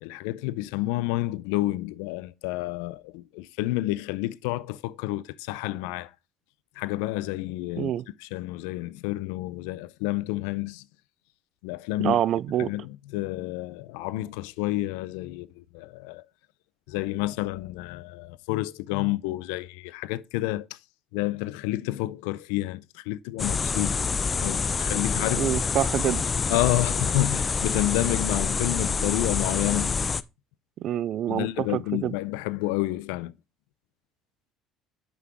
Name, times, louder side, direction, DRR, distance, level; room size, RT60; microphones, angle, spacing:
voice 1, 0.0-6.1 6.8-7.9 8.2-10.8 11.6-12.2 12.6-16.2 16.9-20.7 21.1-24.0 24.4-25.5 26.5-30.0 31.3-33.3, left 18 dB, 90° left, 0.4 m, -29 dB
voice 2, 12.0-12.7 25.4-26.2 30.8-32.1, right 11 dB, 60° right, 0.4 m, -26 dB
sound 1, 23.4-30.2, left 5 dB, 30° left, 0.4 m, -27 dB
6.2 x 5.7 x 4.6 m
supercardioid pair, 90°, 0 cm